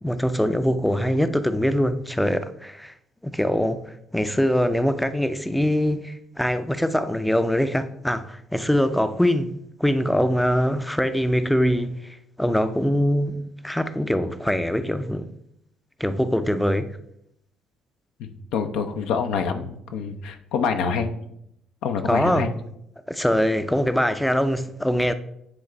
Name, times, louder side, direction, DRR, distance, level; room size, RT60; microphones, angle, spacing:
voice 1, 0.0-2.9 3.2-15.3 16.0-16.9 22.1-22.5 23.1-25.1, equal, 5° left, 0.5 m, -23 dB
voice 2, 18.2-21.1 21.8-22.5, left 6 dB, 70° left, 0.6 m, -26 dB
9.4 x 3.9 x 3.3 m
hypercardioid pair, 50°, 0 cm